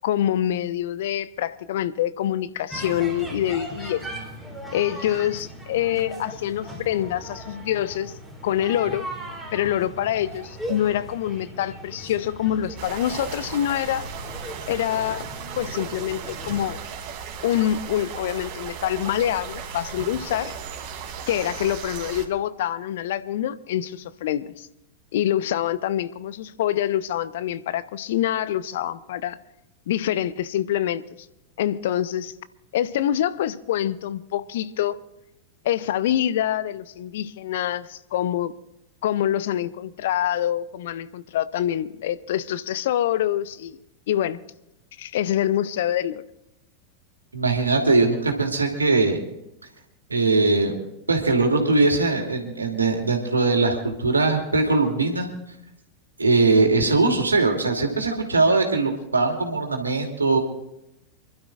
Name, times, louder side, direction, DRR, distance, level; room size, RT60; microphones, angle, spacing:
voice 1, 0.0-4.1 4.7-8.1 8.4-9.1 9.5-14.1 14.7-15.3 15.6-16.8 17.4-20.5 21.3-24.7 25.1-29.4 29.9-31.0 31.6-32.3 32.7-35.0 35.6-38.5 39.0-43.8 44.1-44.4 45.0-46.2, left 11 dB, 55° left, 0.6 m, -25 dB
sound 1, 2.7-16.7, right 1 dB, ahead, 3.0 m, -38 dB
sound 2, 12.8-22.2, right 6 dB, 40° right, 2.7 m, -36 dB
voice 2, 47.3-49.2 50.1-50.8 51.1-55.3 56.2-60.4, right 3 dB, 80° right, 2.6 m, -21 dB
29.0 x 12.0 x 2.4 m
figure-of-eight pair, 90°, 0 cm